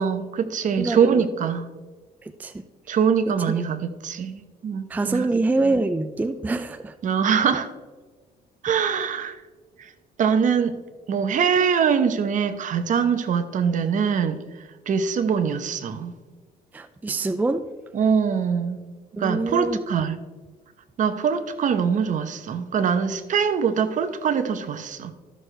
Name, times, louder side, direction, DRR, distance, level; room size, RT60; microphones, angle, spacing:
voice 1, 0.0-1.7 2.9-5.3 7.0-7.7 8.6-9.4 9.8-9.9 10.2-10.8 11.1-14.4 14.9-16.1 17.9-18.8 19.2-20.2 21.0-25.1, right 6 dB, 50° right, 10 dB, 0.9 m, -23 dB
voice 2, 0.8-1.2 2.2-2.6 2.9-3.0 3.3-3.4 4.9-6.9 16.7-17.7 19.2-19.8, right 2 dB, 10° right, 9 dB, 0.4 m, -25 dB
13.5 x 6.4 x 3.3 m, 1.3 s
cardioid pair, 110°, 17 cm